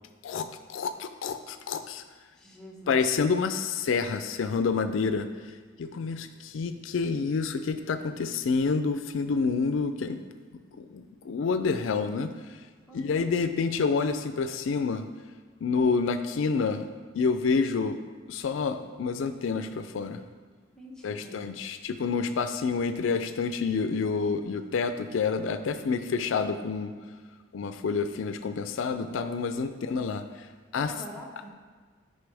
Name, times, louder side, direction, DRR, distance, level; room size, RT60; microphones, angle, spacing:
voice 1, 0.2-2.0 2.9-5.3 5.8-10.2 10.5-12.3 12.9-15.1 15.6-16.9 17.1-18.0 18.3-20.2 21.0-27.0 27.5-30.2 30.7-30.9, left 5 dB, 80° left, 9 dB, 0.4 m, -28 dB
voice 2, 2.3-3.0 12.9-13.3 20.7-21.4 30.8-31.5, left 1 dB, 5° left, -3 dB, 1.0 m, -44 dB
9.4 x 5.6 x 3.4 m, 1.5 s
head